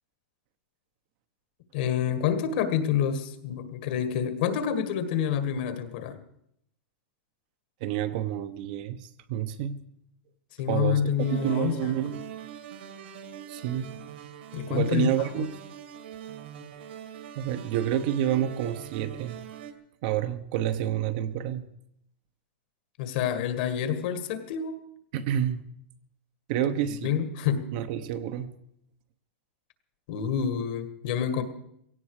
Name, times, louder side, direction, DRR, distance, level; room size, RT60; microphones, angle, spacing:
voice 1, 1.7-6.2 10.6-12.0 14.5-15.5 23.0-24.8 27.0-27.6 30.1-31.4, left 8 dB, 50° left, 9 dB, 1.8 m, -28 dB
voice 2, 7.8-9.8 10.7-11.1 11.4-12.3 13.5-13.9 14.7-15.5 17.4-19.4 20.0-21.6 25.1-25.6 26.5-27.2 27.7-28.5, right 11 dB, 45° right, 10 dB, 0.9 m, -29 dB
sound 1, 11.2-19.7, right 9 dB, 65° right, 2.2 m, -43 dB
17.0 x 16.0 x 4.9 m, 0.73 s
supercardioid pair, 165°, 6 cm